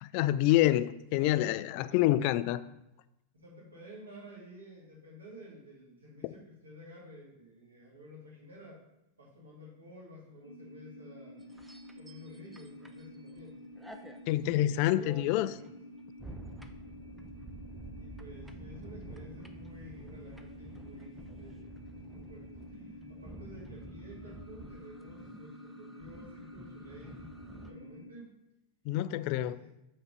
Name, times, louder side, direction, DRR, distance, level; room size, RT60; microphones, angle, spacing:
voice 1, 0.0-2.6 14.3-15.6 28.9-29.6, left 14 dB, 45° left, 14 dB, 0.3 m, -27 dB
voice 2, 3.3-8.8 9.2-11.4 11.9-13.6 14.6-15.7 18.0-21.8 22.1-28.4 29.3-29.7, equal, 75° right, -4 dB, 2.4 m, -52 dB
sound 1, 10.4-28.1, left 1 dB, 85° left, 0.7 m, -50 dB
sound 2, 11.4-13.4 13.8-27.7, right 2 dB, 5° right, 0.5 m, -50 dB
5.8 x 4.4 x 5.3 m, 0.89 s
figure-of-eight pair, 90°, 0 cm